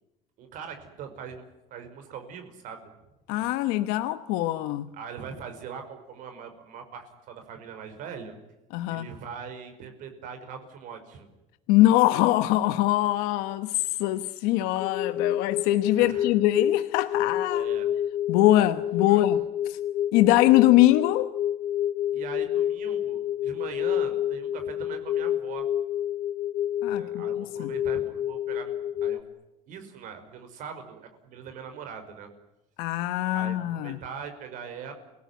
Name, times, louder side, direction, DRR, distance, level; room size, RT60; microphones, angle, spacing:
voice 1, 0.4-1.4 1.7-2.9 4.9-8.3 8.9-11.3 16.0-16.3 17.5-17.9 19.1-19.2 22.1-25.6 26.9-28.7 29.0-29.2 29.7-32.3 33.3-34.9, right 7 dB, 60° right, 5.4 m, -41 dB
voice 2, 3.3-4.9 8.7-9.1 11.7-17.7 18.3-19.8 20.1-21.3 26.8-27.7 32.8-34.0, left 15 dB, 85° left, 1.1 m, -23 dB
sound 1, 14.8-29.2, left 11 dB, 45° left, 1.4 m, -29 dB
29.0 x 18.0 x 9.7 m
cardioid pair, 135°, 15 cm